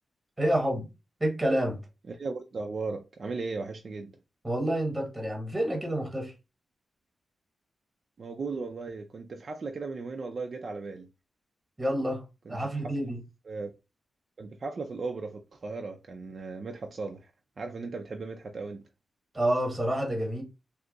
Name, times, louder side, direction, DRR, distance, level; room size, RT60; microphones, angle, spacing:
voice 1, 0.4-0.9 1.2-1.8 4.4-6.3 11.8-12.2 12.5-13.2 19.3-20.4, right 1 dB, 15° right, 1.1 m, -28 dB
voice 2, 2.1-4.2 8.2-11.1 12.5-12.9 13.5-13.7 14.4-17.3 17.6-18.8, right 4 dB, 50° right, 0.4 m, -37 dB
2.7 x 2.3 x 3.8 m
wide cardioid pair, 130°, 0 cm